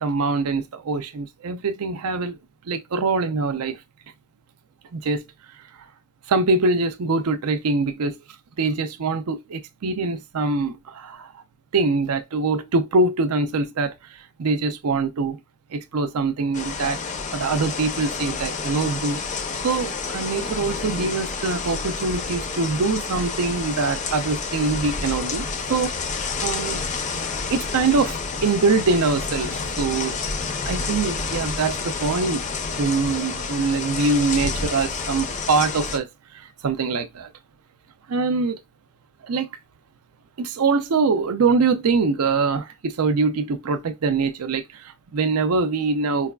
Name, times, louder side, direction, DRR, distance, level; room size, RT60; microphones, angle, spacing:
voice 1, 0.0-2.4 2.7-3.8 4.9-5.2 6.3-8.2 8.6-11.4 11.7-15.4 15.7-17.0 17.3-19.2 19.6-26.0 26.4-26.9 27.5-30.2 30.7-32.5 32.8-36.1 36.3-37.3 38.1-38.6 39.3-39.5 40.4-46.3, right 4 dB, 80° right, 0.5 m, -23 dB
sound 1, 16.5-36.0, left 4 dB, 35° left, 0.5 m, -29 dB
4.6 x 2.3 x 2.2 m
head